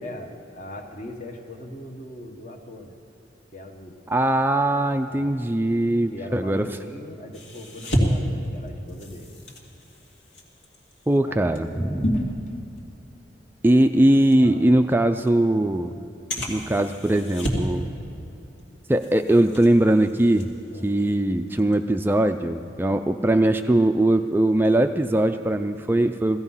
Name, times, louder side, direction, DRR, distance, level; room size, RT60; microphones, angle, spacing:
voice 1, 0.0-3.0 3.5-4.0 5.1-5.5 6.1-9.3 11.2-11.4 11.7-12.5 14.4-14.7 20.7-21.0, left 1 dB, 45° left, 4 dB, 1.4 m, -40 dB
voice 2, 4.1-6.7 11.1-12.3 13.6-15.9 16.5-17.9 18.9-20.5 20.8-26.4, right 1 dB, 10° right, 7 dB, 0.4 m, -20 dB
sound 1, 7.3-13.1 13.5-13.7 14.3-14.4 15.3-15.4 16.3-17.8 18.1-18.6 18.9-21.1 21.5-21.7, equal, 80° left, 2.4 m, -30 dB
16.0 x 16.0 x 5.6 m, 2.8 s
head